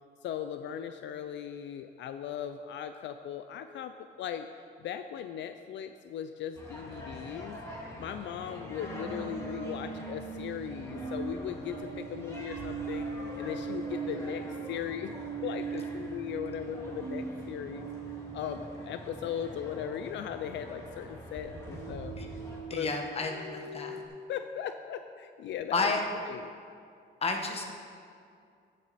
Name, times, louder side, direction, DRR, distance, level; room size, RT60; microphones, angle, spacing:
voice 1, 0.2-4.5 4.8-7.6 8.0-13.1 13.4-15.1 15.4-17.9 18.3-22.1 22.7-22.9 23.9-25.9 26.3-26.5, left 9 dB, 75° left, 8 dB, 0.5 m, -38 dB
sound 1, 6.5-22.6, equal, 15° left, 2.2 m, -44 dB
sound 2, 8.5-19.6 21.3-24.1, right 5 dB, 70° right, 1.4 m, -41 dB
voice 2, 22.7-24.0 25.7-26.0 27.2-27.6, left 3 dB, 30° left, 3 dB, 1.2 m, -31 dB
14.5 x 7.5 x 4.2 m, 2.4 s
cardioid pair, 140°, 19 cm